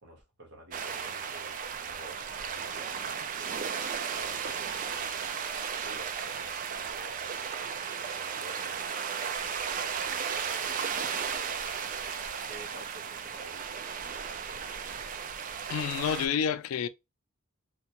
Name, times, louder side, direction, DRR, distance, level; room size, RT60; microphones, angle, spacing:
voice 1, 0.0-3.7 4.1-5.4 5.8-8.8 9.4-14.1, right 1 dB, 55° right, 1.0 m, -51 dB
sound 1, 0.7-16.3, right 7 dB, 40° right, 0.3 m, -35 dB
voice 2, 15.7-16.9, left 8 dB, 85° left, 0.3 m, -29 dB
2.8 x 2.2 x 2.8 m
head